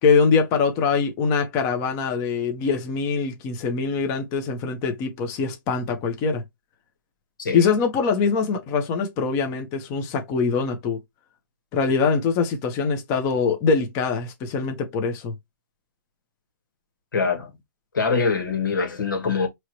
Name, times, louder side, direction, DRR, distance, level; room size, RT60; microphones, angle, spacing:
voice 1, 0.0-6.4 7.5-11.0 11.7-15.3, left 5 dB, 25° left, 1.1 m, -23 dB
voice 2, 17.1-17.5 17.9-19.5, left 5 dB, 80° left, 1.9 m, -23 dB
4.7 x 3.1 x 3.0 m
hypercardioid pair, 150°, 11 cm